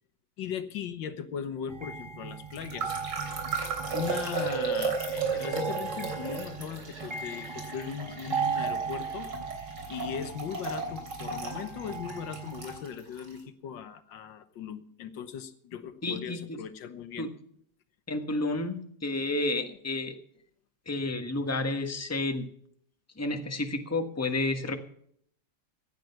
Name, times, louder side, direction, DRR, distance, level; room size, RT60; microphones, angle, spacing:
voice 1, 0.4-3.0 3.3-3.4 3.9-9.3 9.9-17.3, left 8 dB, 90° left, 12 dB, 1.8 m, -38 dB
sound 1, 1.7-12.8, right 6 dB, 25° right, 0.6 m, -37 dB
sound 2, 2.5-13.3, right 4 dB, 70° right, 4.0 m, -35 dB
voice 2, 16.0-16.6 17.2-17.3 18.1-20.1 20.9-22.5 23.2-24.8, left 2 dB, 10° left, 6 dB, 1.2 m, -31 dB
15.5 x 10.5 x 5.8 m, 0.64 s
omnidirectional pair, 1.9 m